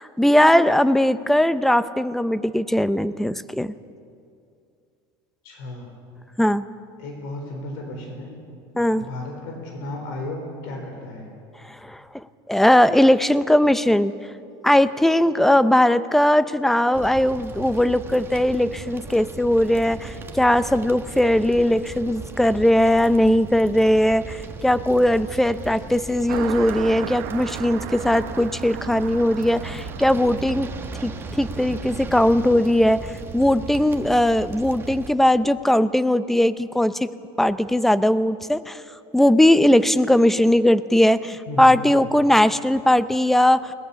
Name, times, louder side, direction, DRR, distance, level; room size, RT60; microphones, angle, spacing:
voice 1, 0.0-3.7 6.4-6.6 8.7-9.1 11.7-12.0 12.5-14.1 14.6-30.7 31.0-31.1 31.4-33.1 33.3-37.1 37.4-38.8 39.1-43.7, left 1 dB, ahead, 15 dB, 0.6 m, -19 dB
voice 2, 5.4-5.9 7.0-8.3 8.9-11.3 41.5-41.9, left 2 dB, 75° left, 2 dB, 4.1 m, -34 dB
sound 1, 16.9-35.1, right 4 dB, 20° right, 1.5 m, -37 dB
Car passing by, 26.3-32.1, right 9 dB, 75° right, 1.4 m, -36 dB
21.5 x 19.0 x 7.0 m, 2.5 s
supercardioid pair, 130°, 11 cm